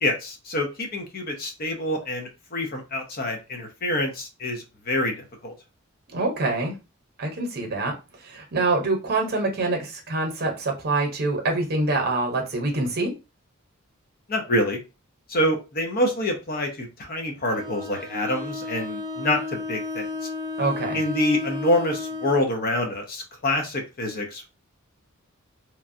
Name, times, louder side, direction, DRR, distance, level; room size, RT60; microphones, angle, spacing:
voice 1, 0.0-5.5 14.3-14.8 15.3-20.1 20.9-24.5, left 1 dB, 45° left, 3 dB, 0.7 m, -26 dB
voice 2, 6.1-6.7 7.2-7.9 8.2-13.1 20.6-21.0, right 2 dB, 45° right, 3 dB, 0.9 m, -25 dB
Bowed string instrument, 17.5-22.5, left 3 dB, 20° right, 0.4 m, -33 dB
3.0 x 2.3 x 2.6 m, 0.28 s
head